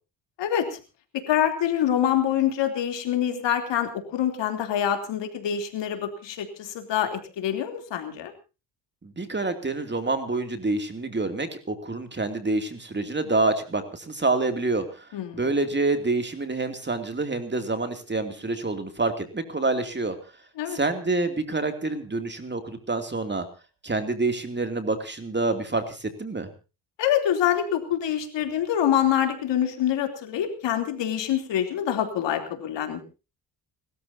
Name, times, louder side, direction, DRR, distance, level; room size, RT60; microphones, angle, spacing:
voice 1, 0.4-0.8 1.1-8.3 15.1-15.5 20.6-20.8 27.0-33.0, left 10 dB, 80° left, 6 dB, 3.3 m, -25 dB
voice 2, 9.0-20.2 20.7-23.5 23.8-26.5, right 3 dB, 25° right, 7 dB, 2.7 m, -27 dB
30.0 x 13.5 x 2.8 m, 0.31 s
supercardioid pair, 65°, 43 cm